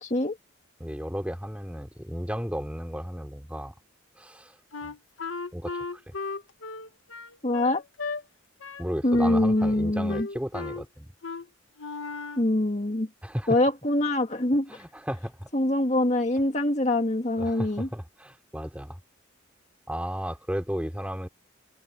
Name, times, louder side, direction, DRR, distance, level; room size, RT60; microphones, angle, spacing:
voice 1, 0.0-0.4 7.4-7.8 9.0-10.3 12.4-13.1 13.5-14.7 15.5-17.9, left 1 dB, 35° left, 1.8 m, -24 dB
voice 2, 0.8-3.7 4.2-4.6 4.8-4.9 5.5-5.8 6.1-6.2 8.8-11.1 13.2-13.5 14.7-15.5 17.4-19.0 19.9-21.3, equal, 5° right, 3.2 m, -34 dB
Wind instrument woodwind instrument, 4.7-8.2 8.6-8.9 9.1-9.8 10.1-10.8 11.2-11.5 11.8-12.5, left 4 dB, 85° left, 1.4 m, -36 dB
open air
head